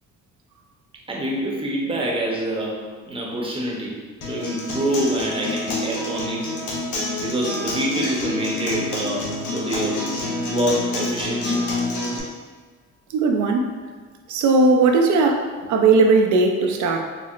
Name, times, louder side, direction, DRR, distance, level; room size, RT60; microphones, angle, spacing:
voice 1, 1.1-2.8 3.0-3.9 4.2-6.4 7.2-10.0 10.5-11.7, right 1 dB, 20° right, -3 dB, 0.7 m, -26 dB
Acoustic guitar, 4.2-12.2, left 2 dB, 80° left, 0.8 m, -27 dB
voice 2, 13.1-13.7 14.3-17.0, right 3 dB, 75° right, 3 dB, 0.5 m, -18 dB
4.4 x 2.0 x 2.4 m, 1.5 s
cardioid pair, 90°, 30 cm